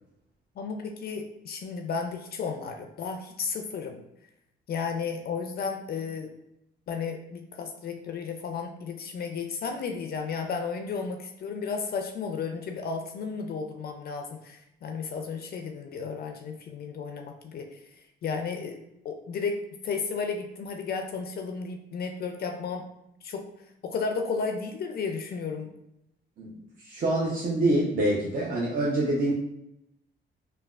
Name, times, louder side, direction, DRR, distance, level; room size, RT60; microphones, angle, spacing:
voice 1, 0.6-4.0 4.7-6.3 6.9-18.8 19.0-19.6 19.8-22.9 23.2-23.4 23.8-25.7, left 5 dB, 50° left, 4 dB, 0.4 m, -33 dB
voice 2, 26.8-29.3, right 1 dB, 45° right, -5 dB, 0.6 m, -25 dB
3.2 x 2.2 x 2.3 m, 0.81 s
cardioid pair, 90°, 20 cm